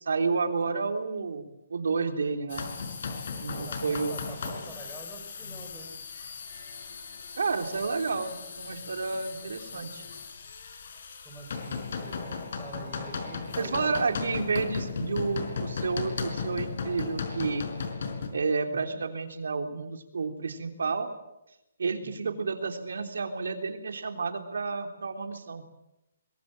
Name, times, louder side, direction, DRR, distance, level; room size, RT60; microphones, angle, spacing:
voice 1, 0.0-2.7 3.4-4.2 7.4-10.0 13.6-17.7 18.3-21.1 21.8-25.6, right 4 dB, 80° right, 6 dB, 3.4 m, -30 dB
sound 1, 2.5-18.3, left 5 dB, 50° left, 4.9 m, -36 dB
voice 2, 3.7-5.9 11.2-14.4 18.7-19.0 22.0-22.3, right 2 dB, 5° right, -1 dB, 3.7 m, -46 dB
24.0 x 22.0 x 7.8 m, 0.91 s
hypercardioid pair, 175°, 0 cm